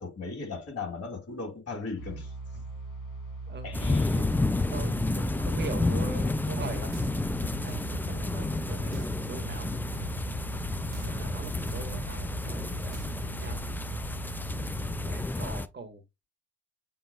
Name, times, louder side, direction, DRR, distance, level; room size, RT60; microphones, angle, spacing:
voice 1, 0.0-2.6 3.6-4.2, left 4 dB, 40° left, 2.9 m, -37 dB
sound 1, 2.0-15.3, right 3 dB, 65° left, 2.3 m, -40 dB
sound 2, 3.7-15.7, left 2 dB, 5° left, 0.3 m, -31 dB
voice 2, 4.5-7.0 7.6-9.7 10.9-13.8 15.0-16.3, right 5 dB, 30° right, 1.3 m, -42 dB
sound 3, 6.6-14.0, right 6 dB, 80° right, 0.6 m, -46 dB
7.5 x 2.8 x 2.3 m
hypercardioid pair, 55°, 36 cm